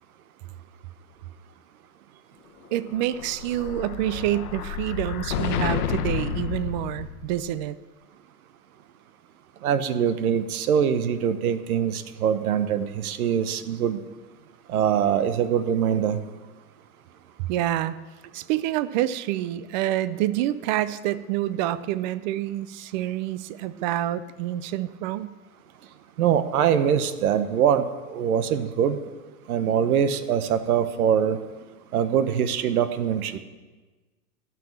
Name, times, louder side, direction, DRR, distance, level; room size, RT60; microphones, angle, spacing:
voice 1, 2.7-7.7 17.4-18.0 18.3-25.3, right 13 dB, 35° right, 16 dB, 0.4 m, -27 dB
Explosion, 2.9-7.5, left 8 dB, 75° left, 1.1 m, -30 dB
voice 2, 9.6-14.0 14.7-16.2 26.2-29.0 29.5-31.4 31.9-33.4, right 8 dB, 70° right, 12 dB, 1.1 m, -23 dB
12.5 x 6.1 x 7.4 m, 1.3 s
hypercardioid pair, 130°, 45 cm